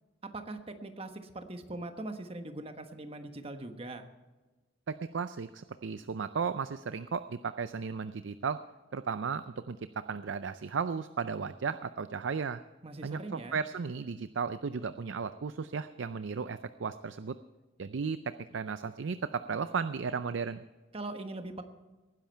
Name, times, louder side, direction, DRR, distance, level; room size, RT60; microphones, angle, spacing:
voice 1, 0.3-4.0 12.8-13.6 20.9-21.6, right 2 dB, 30° right, 7 dB, 1.2 m, -41 dB
voice 2, 4.9-8.6 8.9-12.6 13.0-17.4 17.8-20.6, right 5 dB, 70° right, 12 dB, 0.5 m, -35 dB
19.0 x 10.5 x 4.5 m, 1.2 s
head